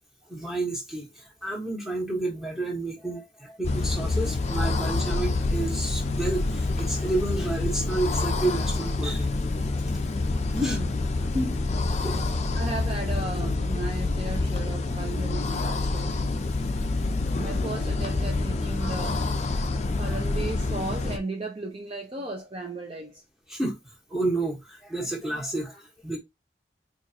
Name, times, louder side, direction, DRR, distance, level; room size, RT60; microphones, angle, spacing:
voice 1, 0.3-9.3 10.6-10.7 12.0-12.3 17.1-17.2 18.8-18.9 20.1-20.2 23.5-23.8 24.1-26.2, right 2 dB, ahead, 1.4 m, -30 dB
sound 1, 3.6-21.2, left 3 dB, 40° left, 0.4 m, -27 dB
voice 2, 10.5-11.8 12.5-16.2 17.4-19.6 20.0-23.2, right 1 dB, 30° right, 0.7 m, -35 dB
4.5 x 2.5 x 2.9 m
head